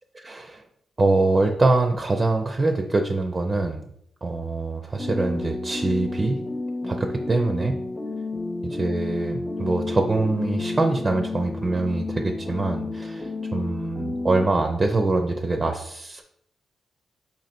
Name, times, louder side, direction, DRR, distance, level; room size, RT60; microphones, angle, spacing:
voice 1, 0.1-0.6 1.0-3.9 4.2-6.4 6.8-7.8 8.7-16.2, right 2 dB, 35° right, 4 dB, 0.5 m, -24 dB
sound 1, 5.0-14.5, left 3 dB, 30° left, 0.6 m, -31 dB
4.0 x 2.8 x 4.3 m, 0.74 s
supercardioid pair, 55°, 0 cm